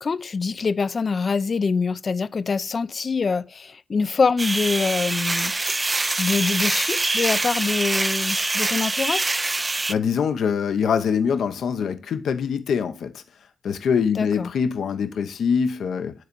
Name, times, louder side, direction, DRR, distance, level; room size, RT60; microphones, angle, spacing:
voice 1, 0.0-5.8 6.2-9.3 14.2-14.5, left 4 dB, 50° left, 0.4 m, -25 dB
sound 1, 4.4-9.9, right 2 dB, 30° right, 0.4 m, -24 dB
voice 2, 9.7-13.2 13.6-16.1, left 6 dB, 80° left, 0.7 m, -24 dB
9.3 x 4.0 x 5.2 m
cardioid pair, 60°, 0 cm